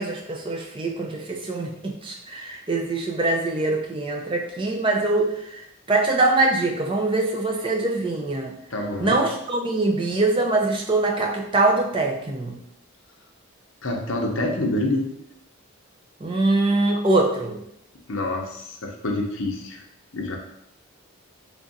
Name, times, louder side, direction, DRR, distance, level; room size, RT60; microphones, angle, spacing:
voice 1, 0.0-5.6 5.9-8.5 9.0-12.6 16.2-17.6, right 2 dB, 25° right, 1 dB, 0.4 m, -23 dB
voice 2, 8.7-9.2 13.8-15.1 18.1-19.8 20.1-20.4, left 1 dB, 60° left, 1 dB, 0.7 m, -27 dB
3.5 x 2.5 x 3.9 m, 0.76 s
head